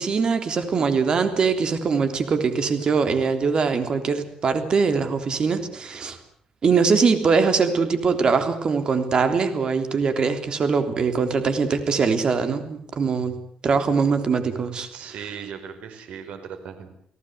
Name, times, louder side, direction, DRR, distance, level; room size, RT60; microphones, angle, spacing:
voice 1, 0.0-6.2 6.6-13.3 13.6-14.9, right 5 dB, 40° right, 8 dB, 3.4 m, -22 dB
voice 2, 14.9-16.9, right 7 dB, 75° right, 8 dB, 5.1 m, -37 dB
29.5 x 18.0 x 8.1 m, 0.65 s
cardioid pair, 130°, 2 cm